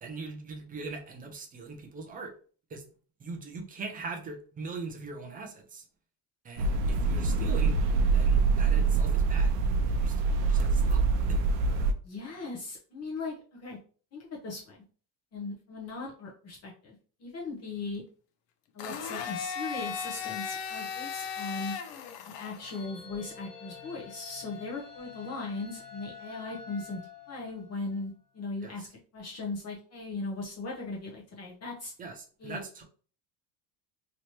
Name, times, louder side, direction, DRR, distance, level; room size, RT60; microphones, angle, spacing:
voice 1, 0.0-2.3 2.7-2.9 3.2-5.8 6.4-7.8 8.1-9.5 9.9-11.0 11.3-11.4 28.6-28.7 32.0-32.8, right 3 dB, 20° right, 3 dB, 0.3 m, -41 dB
sound 1, 6.6-11.9, right 4 dB, 85° right, 0.6 m, -25 dB
voice 2, 12.0-13.8 14.1-14.8 15.3-16.9 17.2-18.0 18.7-21.7 22.2-27.0 27.3-28.9 29.1-31.9 32.4-32.6, left 3 dB, 30° left, -3 dB, 0.8 m, -38 dB
Domestic sounds home sounds, 18.8-22.8, left 7 dB, 85° left, 0.7 m, -37 dB
sound 2, 22.6-28.0, left 6 dB, 60° left, 1.3 m, -48 dB
3.1 x 2.8 x 2.9 m, 0.41 s
cardioid pair, 145°, 48 cm